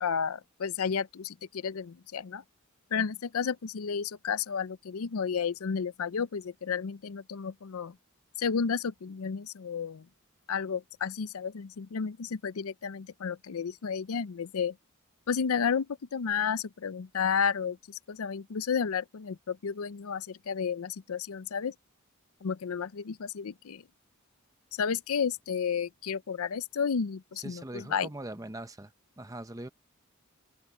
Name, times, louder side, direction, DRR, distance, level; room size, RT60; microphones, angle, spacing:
voice 1, 0.0-2.4 2.9-7.9 8.4-10.0 10.5-14.7 15.3-15.9 16.1-21.7 22.4-23.8 24.8-28.1, left 6 dB, 75° left, 0.5 m, -32 dB
voice 2, 27.4-28.9 29.2-29.7, right 1 dB, 15° right, 0.9 m, -41 dB
open air
head